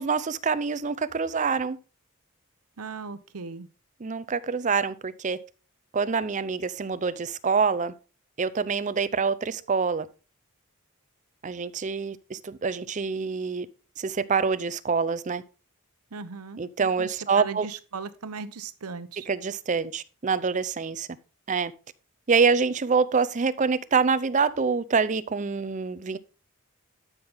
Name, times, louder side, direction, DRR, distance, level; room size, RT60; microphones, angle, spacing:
voice 1, 0.0-1.8 4.0-5.4 5.9-7.9 8.4-10.1 11.4-13.7 14.0-15.4 16.6-17.7 19.3-21.1 21.5-21.7 22.3-26.2, right 5 dB, 35° right, 0.5 m, -26 dB
voice 2, 2.8-3.7 16.1-17.1 17.4-19.3, right 5 dB, 80° right, 0.8 m, -38 dB
12.5 x 5.7 x 3.5 m
head